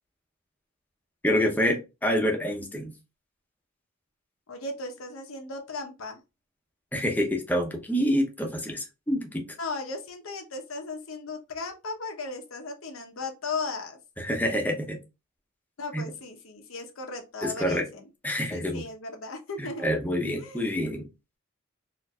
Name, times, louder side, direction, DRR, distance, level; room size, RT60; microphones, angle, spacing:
voice 1, 1.2-2.9 6.9-9.4 14.2-15.0 15.9-16.1 17.4-17.8 18.2-18.8 19.6-21.1, equal, 10° left, 0.7 m, -27 dB
voice 2, 4.5-6.2 9.6-14.0 15.8-18.1 18.5-19.9 20.4-20.7, left 3 dB, 85° left, 0.8 m, -36 dB
4.4 x 2.6 x 2.3 m
head